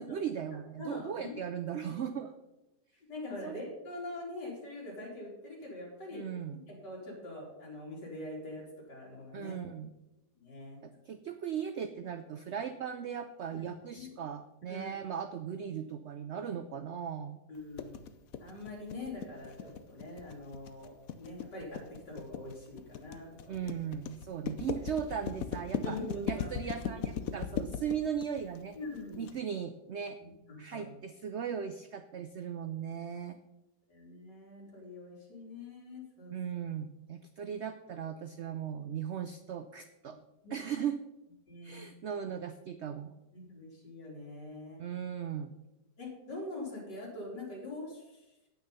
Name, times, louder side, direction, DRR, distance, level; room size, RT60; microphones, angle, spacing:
voice 1, 0.0-2.3 3.4-3.6 6.1-6.6 9.3-9.9 10.8-17.4 23.5-26.0 26.3-28.8 29.2-30.2 30.6-33.4 36.3-40.2 40.5-41.0 41.6-43.1 44.8-45.6, right 8 dB, 90° right, 10 dB, 0.6 m, -38 dB
voice 2, 0.5-1.4 3.1-6.2 6.7-9.6 10.4-10.8 13.5-13.6 14.0-14.1 14.7-15.0 17.5-17.9 18.4-21.8 22.1-23.7 25.8-26.5 27.0-27.3 28.7-29.3 30.2-30.9 33.9-36.3 40.4-40.6 41.5-41.8 43.3-44.8 46.0-48.2, left 2 dB, 80° left, -3 dB, 4.0 m, -44 dB
sound 1, 17.8-29.3, left 7 dB, 60° left, 1.0 m, -38 dB
9.3 x 9.0 x 5.4 m, 0.97 s
omnidirectional pair, 1.8 m